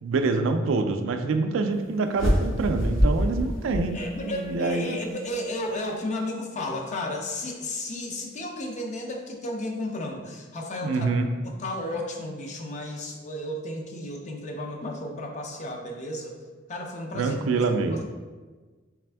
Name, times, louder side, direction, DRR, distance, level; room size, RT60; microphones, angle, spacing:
voice 1, 0.0-5.0 10.8-11.3 17.1-18.0, right 3 dB, 75° right, 6 dB, 0.3 m, -26 dB
sound 1, 2.1-4.5, equal, 85° left, 1.0 m, -25 dB
voice 2, 3.9-16.4 16.7-17.6 17.9-18.0, left 1 dB, 40° left, 2 dB, 0.5 m, -33 dB
3.4 x 3.3 x 3.3 m, 1.3 s
head